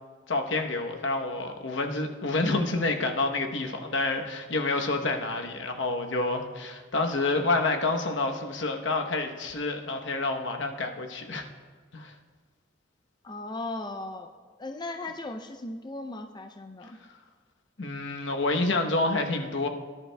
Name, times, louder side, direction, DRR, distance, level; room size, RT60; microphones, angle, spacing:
voice 1, 0.3-11.4 11.9-12.1 17.8-19.7, left 2 dB, 75° left, 4 dB, 0.9 m, -28 dB
voice 2, 13.2-14.3 14.6-17.0, left 2 dB, 25° left, 5 dB, 0.4 m, -37 dB
18.0 x 11.0 x 2.2 m, 1.5 s
head